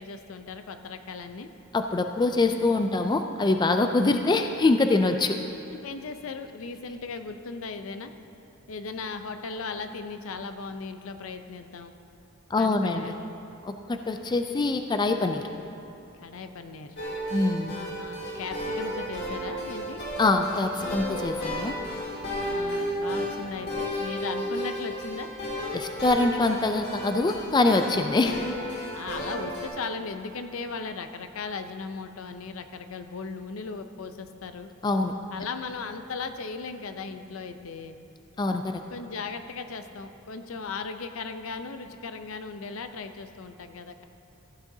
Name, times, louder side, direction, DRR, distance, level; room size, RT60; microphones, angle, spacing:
voice 1, 0.0-1.5 5.8-8.1 8.7-11.9 12.6-13.3 16.2-16.9 17.7-20.0 22.4-25.3 28.9-34.7 35.3-38.0 38.9-44.0, left 4 dB, 70° left, 8 dB, 0.6 m, -37 dB
voice 2, 1.7-5.4 12.5-13.1 13.6-15.4 17.3-17.7 20.2-21.7 25.7-28.4 34.8-35.1 38.4-38.8, left 3 dB, 20° left, 6 dB, 0.3 m, -24 dB
sound 1, 17.0-29.7, equal, 50° left, 1.9 m, -33 dB
15.5 x 9.8 x 2.7 m, 2.9 s
head